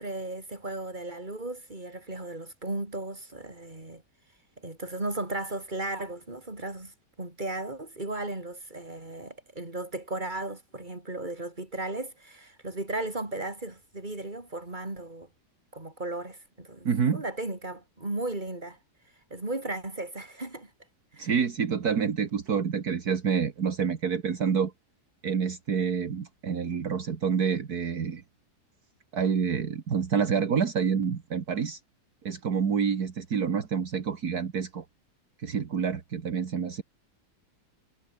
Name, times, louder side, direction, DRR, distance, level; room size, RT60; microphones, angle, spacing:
voice 1, 0.0-4.0 4.6-15.3 15.7-18.8 19.3-20.7 21.1-21.3, right 2 dB, 25° right, 4.5 m, -36 dB
voice 2, 16.9-17.2 21.2-24.7 25.2-28.2 29.1-31.8 32.2-34.8 35.4-36.8, right 6 dB, 65° right, 2.2 m, -28 dB
omnidirectional pair, 1.8 m